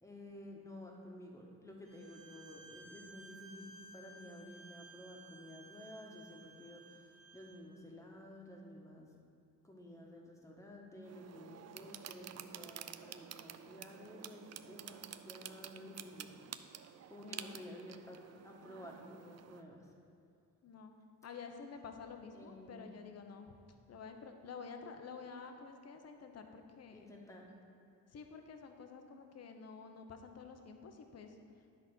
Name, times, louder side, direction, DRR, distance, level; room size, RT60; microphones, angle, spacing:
voice 1, 0.0-9.1 9.6-16.3 16.6-19.9 22.3-22.9 26.9-27.5, left 1 dB, 10° left, -1 dB, 1.4 m, -52 dB
Bowed string instrument, 1.8-7.6, right 3 dB, 85° right, 1.4 m, -57 dB
sound 1, 11.0-19.6, right 9 dB, 50° right, 0.4 m, -50 dB
voice 2, 17.2-17.8 20.6-20.9 21.2-23.5 23.9-27.1 28.1-31.4, left 5 dB, 45° left, 5 dB, 0.8 m, -50 dB
10.0 x 4.2 x 6.1 m, 2.3 s
cardioid pair, 90°, 35 cm